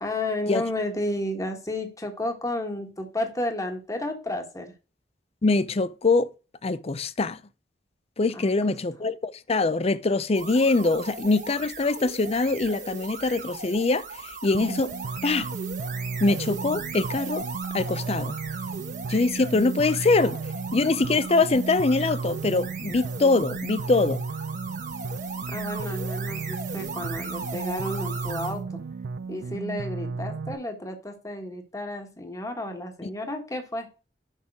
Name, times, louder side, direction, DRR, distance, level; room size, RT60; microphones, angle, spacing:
voice 1, 0.0-4.7 8.3-8.7 25.5-28.8 29.3-33.9, left 1 dB, 20° left, 1.4 m, -32 dB
voice 2, 5.4-6.3 6.6-7.4 8.2-14.9 15.2-15.5 16.2-17.4 17.7-18.3 19.1-20.4 20.7-24.2, left 3 dB, 35° left, 0.5 m, -23 dB
sound 1, 10.3-28.6, right 4 dB, 50° right, 1.5 m, -38 dB
sound 2, 14.5-30.5, right 4 dB, 80° right, 0.4 m, -34 dB
6.5 x 5.4 x 6.0 m
head